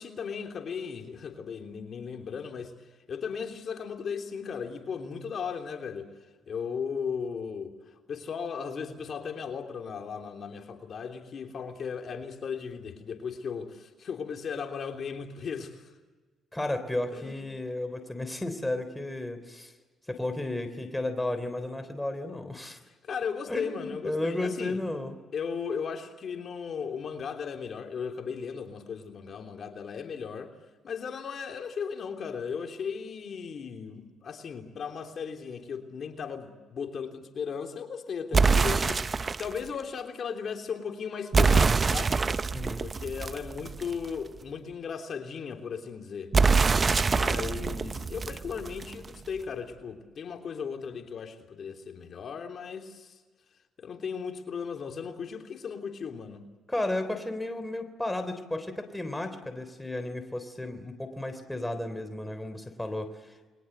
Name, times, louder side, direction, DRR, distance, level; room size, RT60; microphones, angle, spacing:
voice 1, 0.0-2.7 3.1-6.1 6.5-15.9 17.1-17.4 23.0-24.8 25.3-30.5 30.8-42.2 42.8-46.3 47.0-53.2 53.8-56.5, left 6 dB, 55° left, 4 dB, 3.3 m, -36 dB
voice 2, 16.5-19.7 20.1-22.8 23.5-25.1 42.5-42.9 56.7-63.5, left 1 dB, 10° left, 8 dB, 3.6 m, -33 dB
sound 1, 38.3-39.6 41.3-44.1 46.3-49.1, right 4 dB, 35° right, 0.8 m, -25 dB
30.0 x 22.5 x 8.0 m, 1.3 s
cardioid pair, 90°, 0 cm